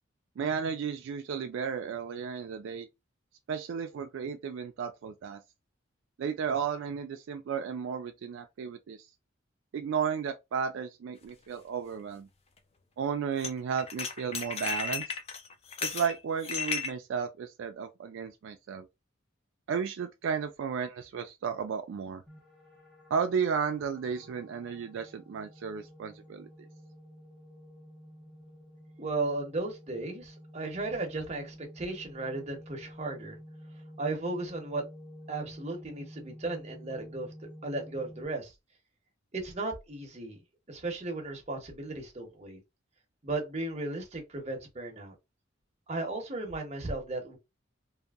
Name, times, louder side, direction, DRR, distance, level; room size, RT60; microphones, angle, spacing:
voice 1, 0.4-2.9 3.5-5.4 6.2-9.1 9.7-12.3 13.0-15.1 15.8-18.9 19.7-22.2 23.1-26.7, right 6 dB, 70° right, 0.3 m, -33 dB
sound 1, 11.2-11.3 13.4-13.5 13.8-16.9, left 5 dB, 30° left, 0.4 m, -34 dB
sound 2, 22.3-38.3, equal, 5° left, 0.9 m, -50 dB
voice 2, 29.0-33.4 34.0-34.8 35.3-37.3 37.6-38.5 39.3-40.4 40.7-42.6 43.2-45.1 45.9-47.4, right 2 dB, 35° right, 0.8 m, -35 dB
2.7 x 2.5 x 2.4 m
head